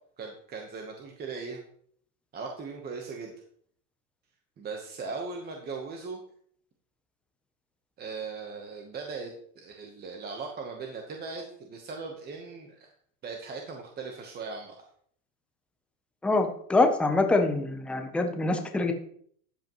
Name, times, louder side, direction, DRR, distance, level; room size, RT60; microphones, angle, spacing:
voice 1, 0.2-1.6 2.3-3.3 4.6-6.2 8.0-12.9 13.2-14.8, right 4 dB, 20° right, 2 dB, 1.0 m, -39 dB
voice 2, 16.2-18.9, left 2 dB, ahead, 5 dB, 0.5 m, -25 dB
13.0 x 8.1 x 3.0 m, 0.62 s
supercardioid pair, 145°, 48 cm